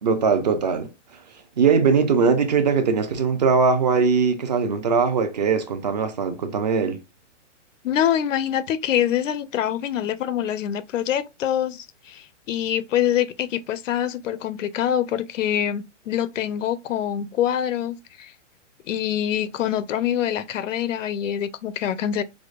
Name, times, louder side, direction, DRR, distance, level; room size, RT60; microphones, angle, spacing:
voice 1, 0.0-0.9 1.6-7.0, right 5 dB, 35° right, 0.4 m, -20 dB
voice 2, 7.8-18.3 18.9-22.2, left 10 dB, 90° left, 0.5 m, -25 dB
4.8 x 2.0 x 2.3 m
hypercardioid pair, 160°, 37 cm